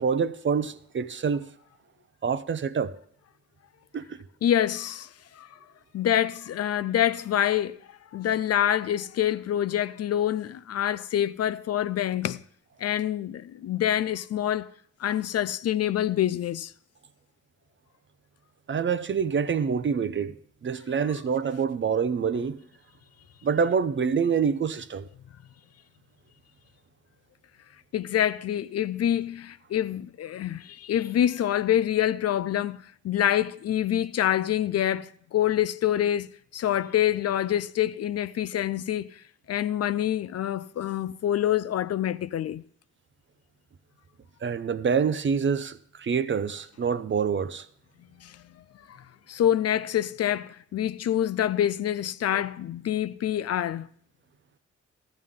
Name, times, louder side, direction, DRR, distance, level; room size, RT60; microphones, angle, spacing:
voice 1, 0.0-1.5 2.2-2.9 3.9-4.2 18.7-20.4 20.6-22.6 23.4-25.1 44.4-47.7, right 6 dB, 40° right, 0.6 m, -26 dB
voice 2, 4.4-5.1 5.4-5.5 5.9-7.8 8.1-12.4 12.8-14.7 15.0-16.7 27.9-39.1 39.5-42.6 48.2-48.4 48.9-49.0 49.3-53.9, left 11 dB, 55° left, 0.4 m, -26 dB
14.0 x 11.0 x 3.7 m
cardioid pair, 80°, 30 cm